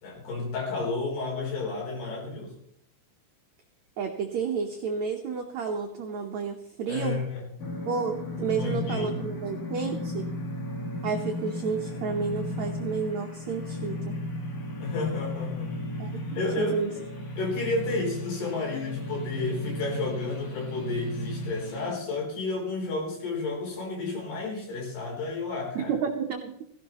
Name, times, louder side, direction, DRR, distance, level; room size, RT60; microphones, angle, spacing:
voice 1, 0.0-2.5 6.9-7.4 8.4-9.1 14.8-15.7 16.4-16.8 17.4-25.9, left 3 dB, 75° left, 0 dB, 5.6 m, -31 dB
voice 2, 4.0-7.2 7.9-10.2 11.0-14.1 16.0-16.9 25.7-26.5, right 5 dB, 85° right, 3 dB, 1.6 m, -31 dB
sound 1, 7.6-21.9, left 1 dB, 50° left, 2.4 m, -35 dB
17.0 x 15.0 x 3.0 m, 0.75 s
omnidirectional pair, 4.7 m